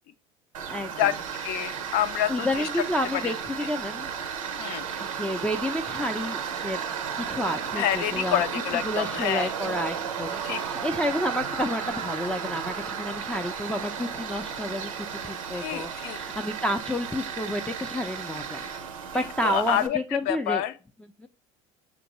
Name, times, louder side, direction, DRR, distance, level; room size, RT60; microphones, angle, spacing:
Tools, 0.5-19.9, right 7 dB, 85° right, 0.6 m, -34 dB
voice 1, 0.7-1.1 2.3-4.1 5.0-6.8 7.2-8.4 8.8-18.6 19.1-20.6 21.2-21.3, equal, 5° left, 0.4 m, -30 dB
voice 2, 1.4-2.7 3.2-3.3 4.6-4.9 7.8-9.5 10.4-10.6 15.5-16.2 19.4-20.0 20.2-20.7, left 12 dB, 65° left, 0.5 m, -27 dB
6.2 x 2.5 x 3.0 m
hypercardioid pair, 75°, 17 cm